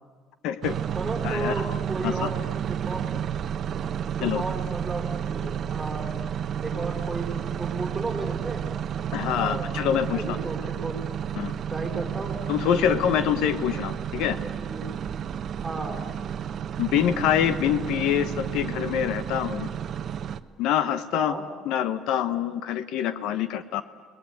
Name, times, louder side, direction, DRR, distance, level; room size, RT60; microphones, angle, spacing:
voice 1, 0.4-0.8 1.2-1.5 2.0-2.3 4.2-4.4 9.1-10.4 11.4-11.5 12.5-14.4 16.8-19.7 20.6-21.3 21.6-23.8, left 10 dB, 75° left, 13 dB, 1.2 m, -25 dB
sound 1, 0.6-20.4, right 9 dB, 45° right, 0.9 m, -31 dB
voice 2, 0.9-3.1 4.2-6.1 6.6-7.3 7.6-8.6 9.4-9.6 10.1-11.0 11.7-12.4 12.8-12.9 14.5-15.0 15.6-16.0 21.1-21.5, right 2 dB, 10° right, 2 dB, 5.0 m, -33 dB
29.0 x 20.5 x 9.6 m, 1.5 s
cardioid pair, 140°, 0 cm